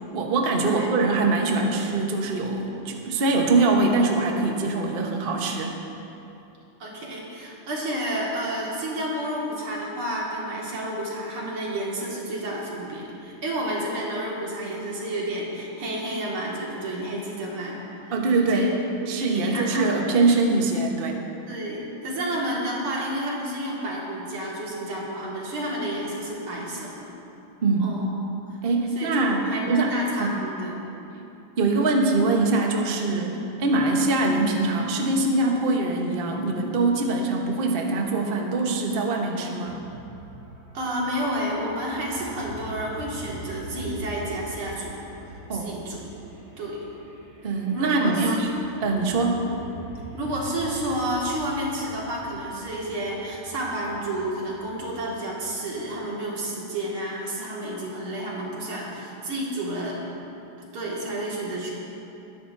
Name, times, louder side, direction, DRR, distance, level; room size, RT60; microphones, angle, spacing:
voice 1, 0.1-5.7 18.1-18.7 19.1-21.2 27.6-27.9 28.6-30.4 31.6-39.8 45.5-45.7 47.4-48.5 48.8-49.4, right 3 dB, 40° right, 1 dB, 0.9 m, -23 dB
voice 2, 6.8-18.2 18.5-18.7 19.1-20.1 21.5-27.1 27.8-28.1 28.9-30.8 40.7-45.0 45.5-46.0 46.6-46.9 47.7-48.4 48.7-49.0 49.4-49.6 50.1-60.0 60.7-61.7, right 1 dB, 85° right, -4 dB, 2.9 m, -30 dB
sound 1, 39.7-55.6, right 2 dB, 15° right, 2.6 m, -44 dB
20.5 x 10.5 x 2.6 m, 3.0 s
omnidirectional pair, 2.3 m